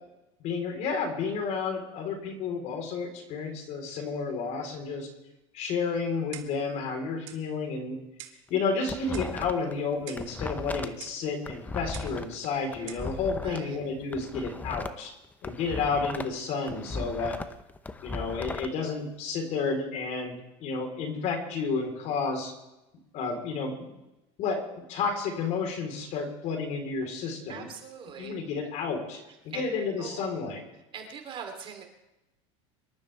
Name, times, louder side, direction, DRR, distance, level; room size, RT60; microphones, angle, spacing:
voice 1, 0.4-5.1 5.5-8.0 8.5-15.1 15.4-17.4 18.0-22.5 23.1-24.0 24.4-27.7 28.2-30.6, left 4 dB, 50° left, 4 dB, 3.9 m, -31 dB
Clock, 6.3-6.7 7.3-7.4 8.2-8.5 9.1-9.4 10.1-10.3 11.0-11.2 11.9-12.2 12.9-13.1, right 13 dB, 70° right, 1.9 m, -45 dB
sound 1, 8.5-9.7 10.0-13.6 14.0-16.4 16.7-18.7, left 3 dB, 10° left, 0.7 m, -37 dB
voice 2, 13.4-13.8 27.5-28.4 29.3-29.6 30.0-30.2 30.9-31.8, right 7 dB, 35° right, 4 dB, 3.1 m, -42 dB
25.0 x 13.0 x 3.4 m, 0.95 s
supercardioid pair, 130°, 15 cm